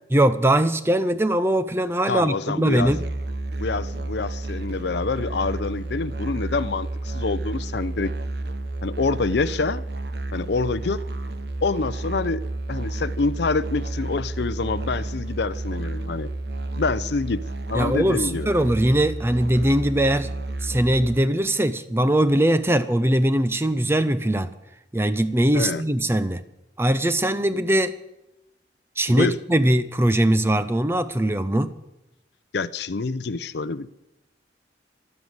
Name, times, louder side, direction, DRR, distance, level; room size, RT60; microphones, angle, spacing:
voice 1, 0.1-3.0 17.7-20.3 20.6-24.5 24.9-26.4 26.8-27.9 29.0-31.7, right 1 dB, 15° right, 12 dB, 0.5 m, -21 dB
voice 2, 2.1-3.0 3.6-8.1 8.8-9.8 10.3-11.0 11.6-12.4 12.7-16.3 16.8-17.4 17.7-18.5 25.5-25.8 29.1-29.4 32.5-33.9, left 3 dB, 65° left, 16 dB, 0.5 m, -26 dB
Musical instrument, 2.8-21.2, right 2 dB, 60° right, 1.1 m, -31 dB
12.5 x 12.0 x 8.0 m, 0.90 s
head